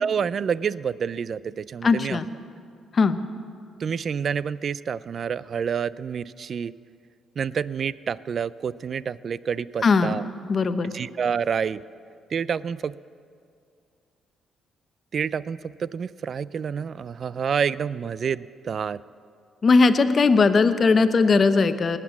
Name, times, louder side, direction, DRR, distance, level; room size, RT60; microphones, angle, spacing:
voice 1, 0.0-2.2 3.8-6.7 7.4-10.2 10.9-11.8 12.3-12.9 15.1-19.0, right 7 dB, 50° right, 19 dB, 0.3 m, -28 dB
voice 2, 1.8-2.3 2.9-3.2 9.8-10.9 19.6-22.0, left 4 dB, 40° left, 10 dB, 0.8 m, -19 dB
19.0 x 8.2 x 7.2 m, 2.3 s
cardioid pair, 90°, 0 cm